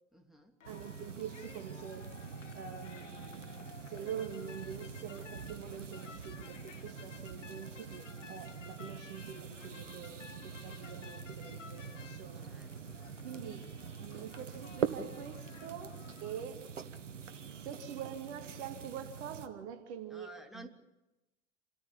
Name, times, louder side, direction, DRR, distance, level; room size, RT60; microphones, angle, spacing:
voice 1, 0.1-0.5 12.3-13.0 20.1-20.7, equal, ahead, 3.0 m, -53 dB
sound 1, 0.6-16.4, left 7 dB, 90° left, 0.7 m, -55 dB
sound 2, 0.6-19.5, right 6 dB, 85° right, 1.2 m, -44 dB
voice 2, 0.7-2.1 2.5-3.5 3.9-12.5 13.2-13.7 14.0-16.7 17.6-20.7, right 8 dB, 65° right, 2.1 m, -45 dB
28.5 x 14.0 x 7.0 m
figure-of-eight pair, 70°, 36 cm